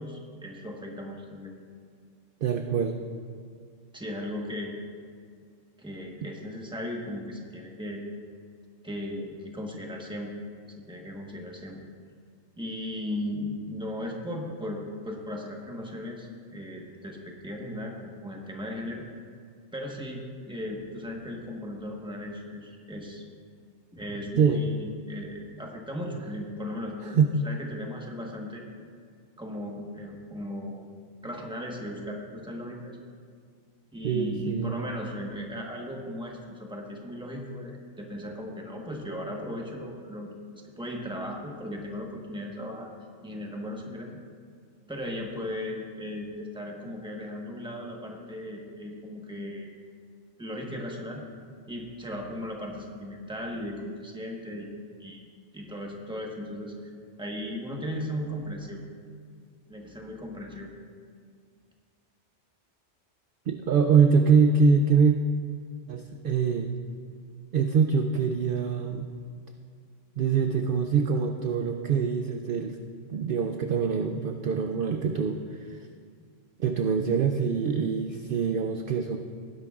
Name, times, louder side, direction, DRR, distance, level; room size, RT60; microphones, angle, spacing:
voice 1, 0.0-1.5 3.9-4.7 5.8-8.0 8.8-10.3 10.8-11.8 12.6-19.0 19.7-23.2 23.9-27.2 27.4-28.6 29.4-30.8 31.2-33.0 33.9-42.9 43.2-44.2 44.9-49.8 50.4-51.2 51.7-54.7 55.0-55.2 55.5-56.7 57.2-58.8 59.7-60.7, left 1 dB, 5° right, -1 dB, 1.1 m, -37 dB
voice 2, 2.4-3.0 24.4-24.6 27.0-27.4 34.0-34.7 63.5-65.2 65.9-66.7 67.5-69.1 70.2-72.8 73.1-75.8 76.6-79.2, right 5 dB, 60° right, 6 dB, 0.6 m, -24 dB
19.0 x 10.5 x 2.4 m, 2.1 s
omnidirectional pair, 1.3 m